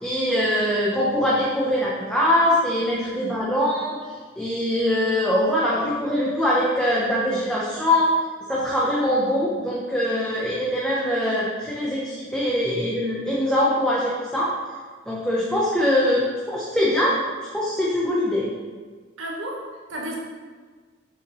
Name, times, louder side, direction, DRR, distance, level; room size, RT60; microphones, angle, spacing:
voice 1, 0.0-8.1 8.5-14.5 15.1-16.2 16.5-17.2 17.5-18.5, left 1 dB, 5° left, -6 dB, 0.8 m, -22 dB
voice 2, 19.2-20.2, right 1 dB, 75° right, -3 dB, 1.3 m, -32 dB
7.0 x 6.9 x 3.1 m, 1.5 s
head